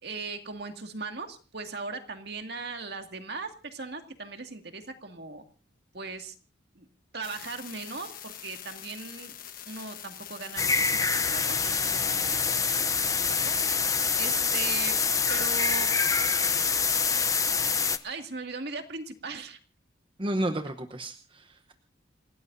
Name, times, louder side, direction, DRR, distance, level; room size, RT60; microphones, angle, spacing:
voice 1, 0.0-5.4 5.9-6.3 6.8-6.9 7.1-9.3 9.7-13.7 14.2-15.0 15.3-15.9 18.0-19.6, right 4 dB, 55° right, 5 dB, 2.2 m, -38 dB
sound 1, 7.2-13.0, left 10 dB, 45° left, 1.3 m, -44 dB
sound 2, 10.6-18.0, left 5 dB, 15° left, 0.8 m, -26 dB
voice 2, 20.2-21.7, right 1 dB, 25° right, 7 dB, 0.9 m, -32 dB
28.5 x 17.5 x 2.7 m, 0.36 s
head